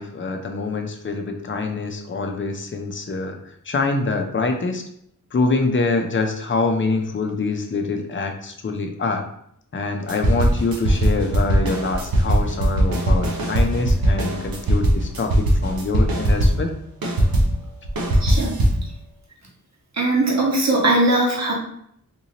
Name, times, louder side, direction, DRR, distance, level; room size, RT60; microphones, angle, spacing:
voice 1, 0.0-3.4 3.7-4.8 5.3-9.3 9.7-16.7, left 3 dB, 35° left, 4 dB, 0.6 m, -25 dB
sound 1, 10.1-16.7 17.0-18.9, right 1 dB, 85° right, 0.8 m, -20 dB
voice 2, 18.2-18.5 20.0-21.5, right 2 dB, 50° right, -3 dB, 1.2 m, -19 dB
3.6 x 2.8 x 2.9 m, 0.70 s
wide cardioid pair, 60°, 35 cm